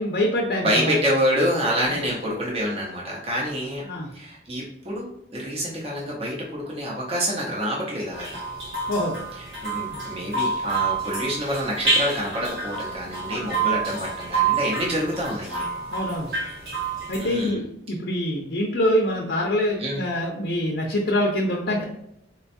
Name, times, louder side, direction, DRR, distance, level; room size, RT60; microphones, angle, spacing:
voice 1, 0.0-1.0 3.9-4.1 8.9-9.2 15.9-16.3 17.1-21.8, left 1 dB, 65° left, -2 dB, 0.6 m, -25 dB
voice 2, 0.6-3.8 4.1-8.4 9.6-15.7 17.2-17.6 19.8-20.0, equal, 30° right, -3 dB, 0.7 m, -27 dB
sound 1, 8.1-17.5, right 4 dB, 60° right, 1.1 m, -28 dB
4.2 x 2.3 x 2.6 m, 0.77 s
head